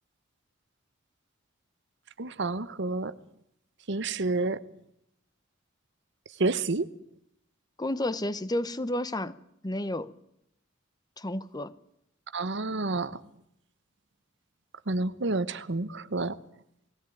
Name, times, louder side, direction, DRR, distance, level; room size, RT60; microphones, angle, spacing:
voice 1, 2.2-3.1 3.9-4.6 6.4-6.8 12.3-13.1 14.9-16.4, right 3 dB, 60° right, 1.0 m, -29 dB
voice 2, 7.8-9.4 9.6-10.1 11.2-11.7, left 1 dB, 20° left, 0.9 m, -31 dB
20.5 x 17.0 x 9.2 m
head